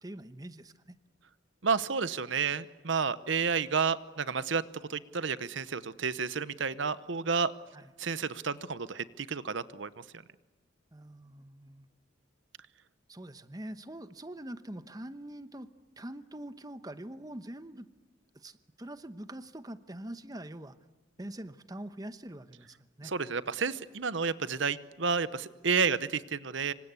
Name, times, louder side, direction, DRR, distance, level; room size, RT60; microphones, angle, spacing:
voice 1, 0.0-1.0 7.7-7.9 10.9-11.9 13.1-15.7 16.0-17.9 18.3-20.8 21.2-23.1, right 1 dB, 20° right, 11 dB, 1.0 m, -44 dB
voice 2, 1.6-4.6 4.9-7.5 8.0-9.9 23.0-26.7, right 5 dB, 70° right, 15 dB, 0.9 m, -31 dB
26.5 x 25.5 x 8.3 m, 1.2 s
head